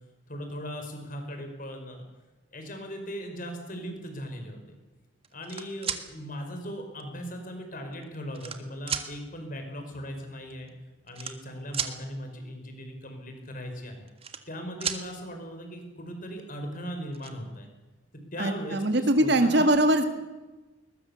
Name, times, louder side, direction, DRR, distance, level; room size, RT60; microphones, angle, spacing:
voice 1, 0.3-2.0 2.5-4.8 5.3-10.7 11.0-14.1 14.5-17.7 18.3-19.7, equal, 45° left, 5 dB, 5.0 m, -38 dB
sound 1, 5.2-6.0 7.0-7.1 7.9-8.6 8.9-9.1 10.2-10.3 10.5-10.7 11.1-11.9 13.8-14.6 14.8-15.0 16.5-16.6 16.9-17.3, right 7 dB, 30° right, 1.7 m, -33 dB
voice 2, 18.4-20.0, right 1 dB, 60° right, 7 dB, 2.0 m, -22 dB
22.0 x 20.5 x 7.2 m, 1.1 s
head